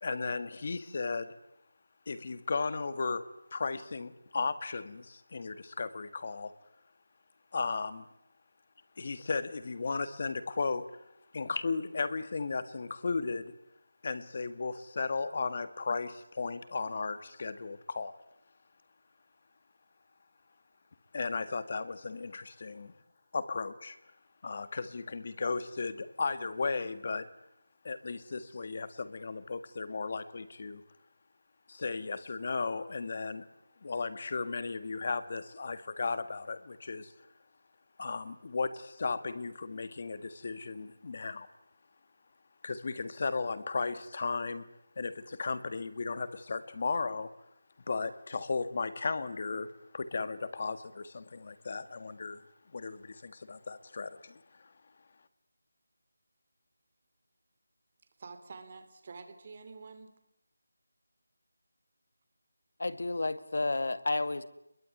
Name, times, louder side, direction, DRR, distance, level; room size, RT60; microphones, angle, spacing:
voice 1, 0.0-1.3 2.1-6.5 7.5-8.1 9.0-11.0 11.3-13.5 14.0-18.1 21.1-22.9 23.3-24.0 24.4-27.3 27.8-30.8 31.7-33.5 33.8-37.1 38.0-41.5 42.6-44.7 45.0-47.3 47.9-49.7 49.9-52.4 52.7-54.7, left 4 dB, 30° left, 1.7 m, -35 dB
voice 2, 58.2-60.2, right 4 dB, 25° right, 3.0 m, -48 dB
voice 3, 62.8-64.4, left 2 dB, 55° left, 2.0 m, -31 dB
27.0 x 22.0 x 9.7 m
figure-of-eight pair, 175°, 0 cm